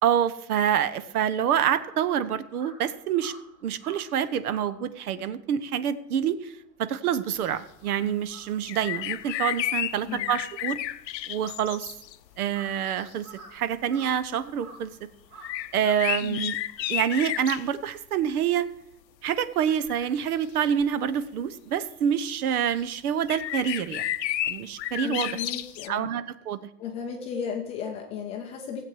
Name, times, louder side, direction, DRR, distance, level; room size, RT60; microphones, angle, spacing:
voice 1, 0.0-3.3 3.6-6.5 6.8-10.8 11.3-11.9 12.4-13.3 13.5-14.9 15.7-16.6 16.9-18.7 19.2-24.0 24.5-25.4 25.9-26.6, right 9 dB, 60° right, 15 dB, 1.0 m, -27 dB
Crow, 1.0-7.3 7.6-16.3, right 3 dB, 15° right, 2.7 m, -52 dB
sound 1, 8.7-12.2 12.9-13.0 15.4-17.7 19.7-20.1 20.8-20.9 22.7-22.8 23.3-25.9, left 13 dB, 85° left, 0.8 m, -31 dB
voice 2, 16.2-16.5 25.0-26.1 26.8-28.9, left 7 dB, 15° left, 2 dB, 0.5 m, -35 dB
16.0 x 7.9 x 4.7 m, 0.75 s
hypercardioid pair, 150°, 49 cm